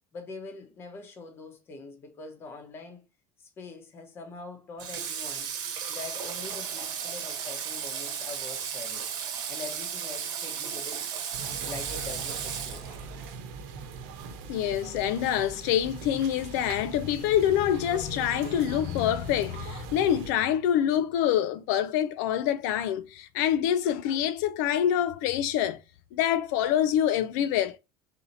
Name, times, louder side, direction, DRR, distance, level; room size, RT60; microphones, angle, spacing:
voice 1, 0.1-3.0 3.4-5.5 5.9-9.1 9.5-11.1 11.5-13.0, left 3 dB, 25° left, 0.9 m, -43 dB
Water / Water tap faucet, 4.8-13.3, right 8 dB, 45° right, 1.1 m, -35 dB
sound 1, 11.3-20.3, right 5 dB, 70° right, 0.9 m, -41 dB
voice 2, 14.5-25.8 26.1-27.8, left 10 dB, 80° left, 0.4 m, -26 dB
4.1 x 2.7 x 4.0 m
cardioid pair, 175°, 9 cm